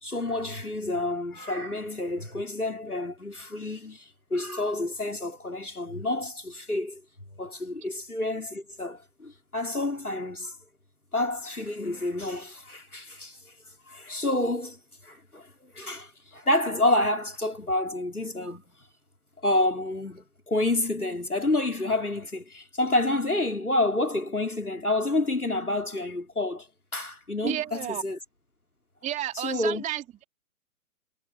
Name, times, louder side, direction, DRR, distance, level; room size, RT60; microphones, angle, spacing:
voice 1, 0.0-7.0 7.4-10.6 11.1-13.5 13.9-18.6 19.4-26.7 26.9-28.2 29.3-29.8, left 2 dB, 85° left, 4.9 m, -29 dB
voice 2, 27.4-28.0 29.0-30.2, right 12 dB, 15° right, 3.1 m, -32 dB
figure-of-eight pair, 120°, 43 cm